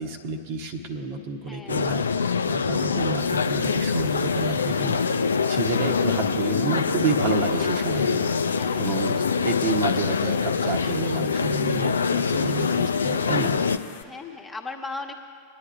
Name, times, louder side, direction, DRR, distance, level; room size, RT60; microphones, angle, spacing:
voice 1, 0.0-5.0 5.5-8.3 8.8-13.6, right 3 dB, 50° right, 4 dB, 1.0 m, -29 dB
voice 2, 1.4-1.9 8.5-9.0 14.0-15.1, left 3 dB, 15° left, 2 dB, 1.1 m, -39 dB
sound 1, 1.7-13.8, left 5 dB, 75° left, 0.4 m, -24 dB
sound 2, 3.2-14.0, left 7 dB, 55° left, 0.8 m, -43 dB
23.5 x 10.0 x 2.5 m, 2.2 s
figure-of-eight pair, 90°, 0 cm